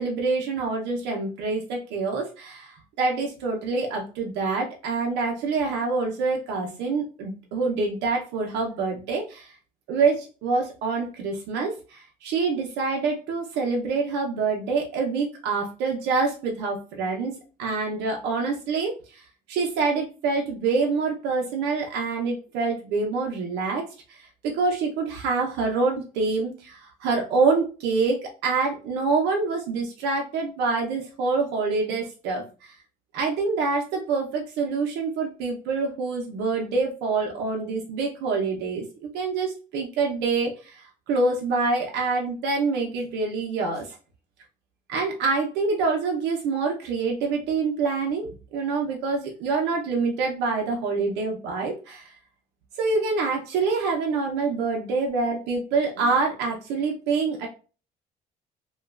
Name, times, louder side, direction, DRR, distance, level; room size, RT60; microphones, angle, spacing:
voice 1, 0.0-9.5 9.9-19.2 19.5-24.2 24.4-32.7 33.1-44.0 44.9-52.1 52.8-57.5, right 4 dB, 90° right, 0 dB, 0.7 m, -26 dB
2.9 x 2.3 x 2.4 m, 0.34 s
cardioid pair, 110°, 17 cm